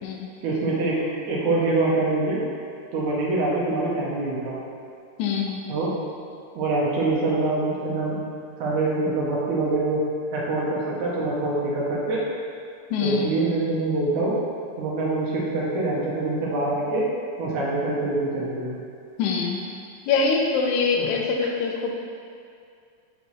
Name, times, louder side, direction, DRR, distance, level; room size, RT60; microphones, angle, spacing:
voice 1, 0.4-2.4 2.9-4.6 5.7-5.9 6.6-8.2 8.6-10.0 10.3-12.2 13.0-14.4 14.8-17.1 17.4-18.8 21.0-21.1 21.4-21.5, right 2 dB, 75° right, -5 dB, 2.2 m, -25 dB
voice 2, 5.2-5.6 12.9-13.3 19.2-19.6 20.1-21.9, left 5 dB, 75° left, 1 dB, 1.9 m, -24 dB
8.0 x 4.4 x 3.1 m, 2.4 s
omnidirectional pair, 3.6 m